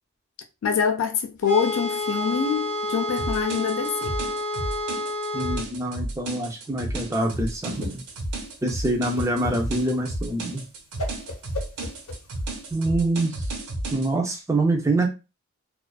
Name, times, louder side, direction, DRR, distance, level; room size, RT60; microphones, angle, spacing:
voice 1, 0.6-4.2, left 6 dB, 65° left, 0.3 m, -25 dB
sound 1, 1.4-5.6, left 1 dB, 35° left, 0.7 m, -29 dB
sound 2, 3.2-14.1, right 1 dB, 90° right, 0.7 m, -32 dB
voice 2, 5.3-8.0 8.6-10.6 12.7-13.4 13.9-15.1, right 2 dB, 15° right, 0.4 m, -25 dB
Whoosh swoosh swish, 7.2-12.7, left 1 dB, 80° left, 0.8 m, -37 dB
2.4 x 2.3 x 2.2 m
head